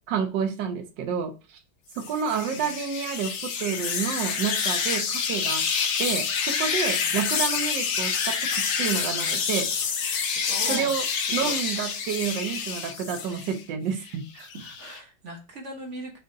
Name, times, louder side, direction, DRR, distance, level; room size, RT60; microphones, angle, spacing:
voice 1, 0.1-1.6 2.0-5.6 6.0-9.7 10.7-11.0 11.3-14.5, right 7 dB, 70° right, 5 dB, 1.5 m, -29 dB
sound 1, 2.0-13.6 14.0-15.0, left 6 dB, 80° left, 0.6 m, -28 dB
voice 2, 10.3-11.6 14.5-16.2, right 2 dB, 45° right, 1 dB, 1.3 m, -40 dB
5.3 x 2.7 x 3.4 m, 0.32 s
omnidirectional pair, 2.1 m